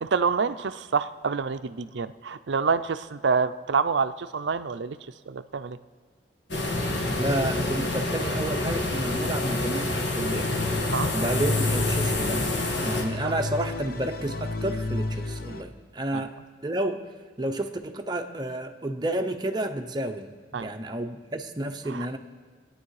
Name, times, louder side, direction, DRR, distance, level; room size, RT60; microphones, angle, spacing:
voice 1, 0.0-5.0 5.3-5.8 10.9-11.1 13.2-13.3 16.1-16.2 20.5-20.7 21.9-22.1, right 5 dB, 70° right, 12 dB, 0.5 m, -27 dB
sound 1, 6.5-13.0, left 2 dB, 65° left, 1.8 m, -27 dB
voice 2, 7.2-10.5 11.1-12.5 12.8-16.3 16.6-17.0 17.4-22.2, right 1 dB, 20° right, 5 dB, 0.8 m, -31 dB
sound 2, 10.2-15.6, left 2 dB, 50° left, 0.8 m, -31 dB
21.5 x 9.2 x 4.8 m, 1.5 s
head